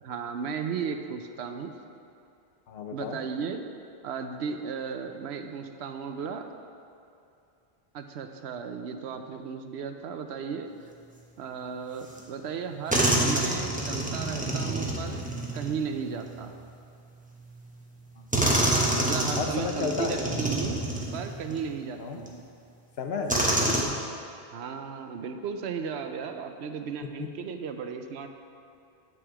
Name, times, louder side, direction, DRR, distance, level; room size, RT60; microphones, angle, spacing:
voice 1, 0.0-1.7 2.9-3.6 4.0-6.5 7.9-10.7 11.4-15.3 15.5-16.6 19.0-20.8 21.1-22.4 24.5-28.3, right 6 dB, 80° right, 6 dB, 0.9 m, -35 dB
voice 2, 2.7-3.2 18.2-18.6 19.4-20.1 20.3-20.4 22.0-22.2 23.0-23.9 27.2-27.3, left 5 dB, 75° left, 4 dB, 1.0 m, -33 dB
sound 1, 12.2-12.3 12.9-16.5 17.5-17.6 18.3-21.6 22.3-22.4 23.3-23.8, right 1 dB, 10° right, 0.9 m, -27 dB
9.3 x 6.3 x 4.8 m, 2.6 s
omnidirectional pair, 1.1 m